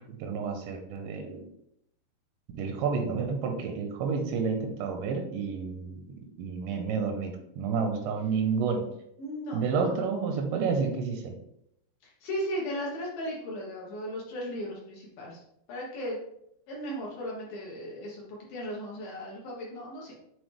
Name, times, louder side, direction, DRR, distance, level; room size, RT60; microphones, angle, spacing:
voice 1, 0.1-1.5 2.6-8.8 9.5-11.4, right 5 dB, 85° right, 4 dB, 2.9 m, -30 dB
voice 2, 9.2-9.9 12.0-15.4 15.7-16.2 16.7-20.2, equal, 65° left, -4 dB, 2.6 m, -36 dB
8.1 x 3.8 x 3.3 m, 0.76 s
omnidirectional pair, 5.2 m